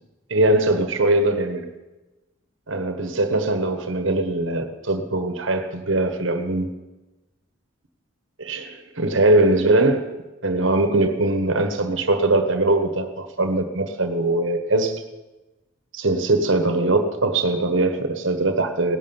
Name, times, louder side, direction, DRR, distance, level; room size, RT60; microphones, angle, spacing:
voice 1, 0.3-1.7 2.7-6.7 8.4-10.1 10.4-15.0 15.9-19.0, right 2 dB, 65° right, 8 dB, 1.4 m, -21 dB
17.5 x 11.5 x 7.1 m, 1.1 s
head